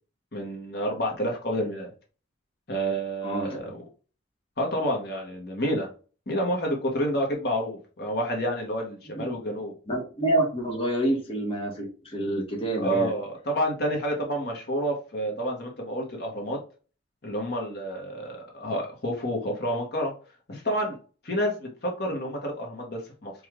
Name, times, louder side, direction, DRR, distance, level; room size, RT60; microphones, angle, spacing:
voice 1, 0.3-1.9 2.7-3.7 4.6-5.9 6.3-9.7 12.8-16.6 17.2-20.1 20.5-21.0 21.2-23.3, equal, 55° left, 0 dB, 1.2 m, -29 dB
voice 2, 3.2-3.6 9.1-9.2 9.9-13.1, right 1 dB, 30° left, -1 dB, 1.3 m, -27 dB
4.9 x 2.6 x 3.6 m, 0.36 s
head